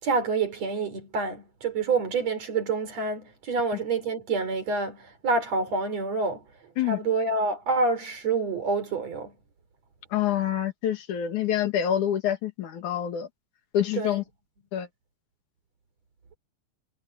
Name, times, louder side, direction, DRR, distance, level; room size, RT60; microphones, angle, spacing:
voice 1, 0.0-6.4 6.8-9.3 14.0-14.2, right 4 dB, 60° right, 5.1 m, -27 dB
voice 2, 10.1-13.3 13.7-14.2 14.7-14.9, left 10 dB, 85° left, 3.3 m, -26 dB
omnidirectional pair, 3.4 m